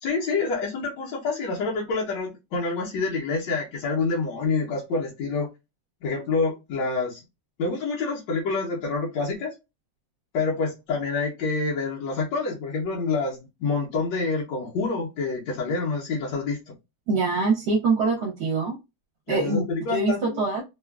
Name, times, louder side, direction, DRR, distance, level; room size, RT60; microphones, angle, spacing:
voice 1, 0.0-5.5 6.0-7.2 7.6-9.6 10.3-16.6 19.3-20.4, left 4 dB, 80° left, 1.5 m, -27 dB
voice 2, 17.1-18.8 19.3-20.6, right 3 dB, 70° right, 1.2 m, -24 dB
3.5 x 2.3 x 2.3 m
omnidirectional pair, 1.9 m